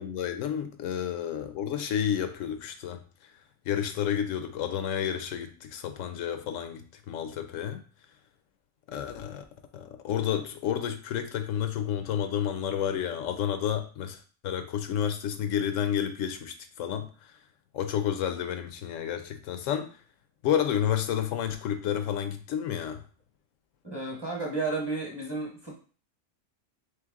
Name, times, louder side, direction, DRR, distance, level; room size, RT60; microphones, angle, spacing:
voice 1, 0.0-3.0 3.7-7.8 8.9-9.4 9.7-17.1 17.7-19.9 20.4-23.0, left 9 dB, 85° left, 8 dB, 0.9 m, -30 dB
voice 2, 23.8-25.8, right 3 dB, 20° right, -2 dB, 0.9 m, -32 dB
3.3 x 3.2 x 3.5 m, 0.40 s
omnidirectional pair, 1.3 m